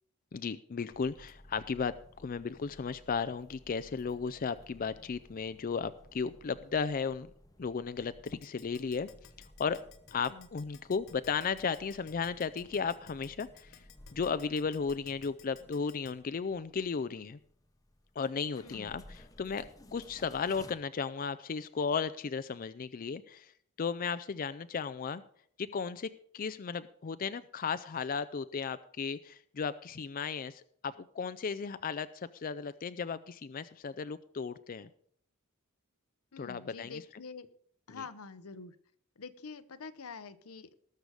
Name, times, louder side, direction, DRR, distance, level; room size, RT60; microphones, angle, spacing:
voice 1, 0.3-1.9 2.2-7.3 7.6-9.1 9.6-9.8 10.1-13.8 14.1-17.4 18.2-19.7 19.9-23.5 23.8-25.2 25.6-34.9 36.4-37.0 37.9-38.0, left 5 dB, 40° left, 14 dB, 0.4 m, -35 dB
sound 1, 0.9-20.7, left 1 dB, 15° left, 0.9 m, -57 dB
Keyboard (musical), 8.3-16.1, left 8 dB, 65° left, 1.5 m, -56 dB
voice 2, 18.6-18.9 36.3-37.5 37.9-38.8 39.2-40.8, left 4 dB, 85° left, 13 dB, 0.8 m, -46 dB
19.0 x 6.8 x 4.9 m, 0.62 s
head